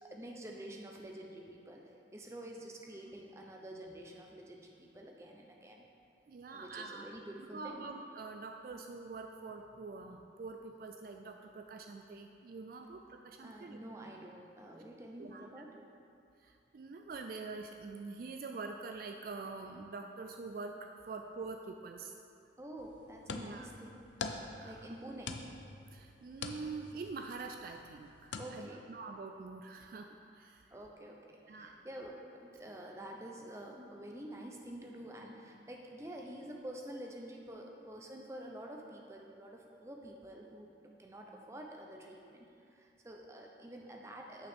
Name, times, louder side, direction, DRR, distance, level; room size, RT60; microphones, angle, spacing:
voice 1, 0.0-1.8 2.1-5.8 6.5-7.9 13.4-15.8 22.6-24.0 24.6-25.4 28.4-28.8 30.7-40.7 41.0-44.5, right 1 dB, 15° right, 0 dB, 0.6 m, -48 dB
voice 2, 6.3-7.1 7.5-13.8 15.2-15.5 16.4-22.1 23.3-23.7 24.4-25.0 25.9-30.7 31.4-31.8, right 4 dB, 50° right, 4 dB, 0.3 m, -45 dB
sound 1, 22.8-28.5, left 4 dB, 90° left, 0.5 m, -45 dB
8.9 x 6.1 x 3.6 m, 2.6 s
head